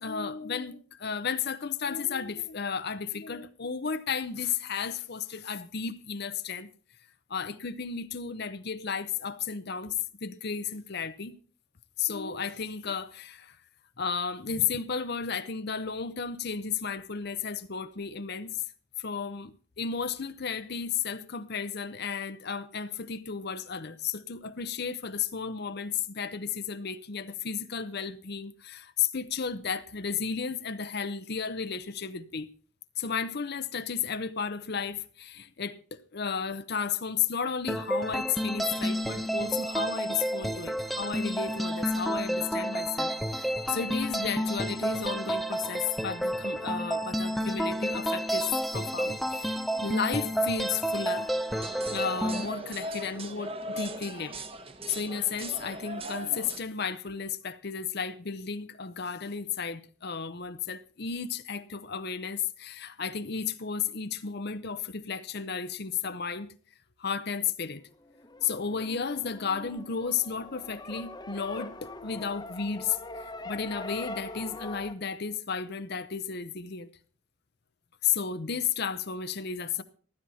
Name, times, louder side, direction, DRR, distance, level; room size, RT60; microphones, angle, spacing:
voice 1, 0.0-6.7 7.3-11.4 12.0-13.6 14.0-18.6 19.0-32.5 33.0-51.3 51.9-54.4 54.9-66.5 67.0-67.8 68.4-76.9 78.0-79.8, left 6 dB, 50° left, 0.7 m, -33 dB
sound 1, 37.7-52.5, equal, ahead, 0.5 m, -30 dB
sound 2, 51.5-56.6, right 1 dB, 25° right, 1.1 m, -39 dB
sound 3, 67.8-74.9, left 2 dB, 20° left, 1.0 m, -42 dB
15.0 x 13.0 x 4.2 m
head